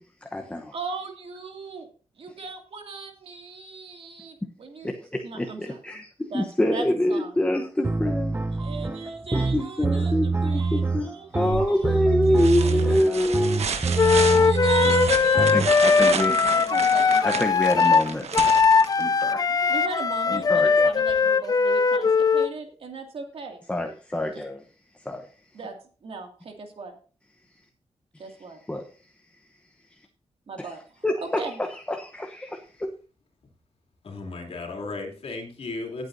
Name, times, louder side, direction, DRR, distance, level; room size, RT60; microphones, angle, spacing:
voice 1, 0.0-0.7 4.8-8.3 9.3-13.6 15.4-16.7 17.2-18.2 19.0-19.5 20.3-20.9 23.7-24.6 25.0-25.3 28.7-28.9 29.9-30.0 30.6-30.8 31.0-32.9, left 1 dB, 10° left, 3 dB, 0.9 m, -26 dB
voice 2, 0.7-1.9 2.2-4.9 5.2-5.8 6.3-6.4 6.7-7.3 8.6-10.1 10.4-11.9 12.3-12.8 14.1-15.7 16.0-17.3 19.6-23.6 25.5-25.8 26.0-27.0 28.2-28.6 30.5-30.8 31.4-31.6, right 4 dB, 60° right, 3 dB, 2.3 m, -37 dB
sound 1, 7.8-15.7, right 4 dB, 20° right, 0.5 m, -25 dB
sound 2, 11.5-11.9 12.3-19.3 21.1-21.2, right 6 dB, 75° right, 1.3 m, -31 dB
Wind instrument woodwind instrument, 14.0-22.5, left 5 dB, 35° left, 0.4 m, -20 dB
voice 3, 34.0-36.1, left 3 dB, 60° left, 1 dB, 2.8 m, -35 dB
18.0 x 8.2 x 2.7 m, 0.38 s
wide cardioid pair, 150°, 11 cm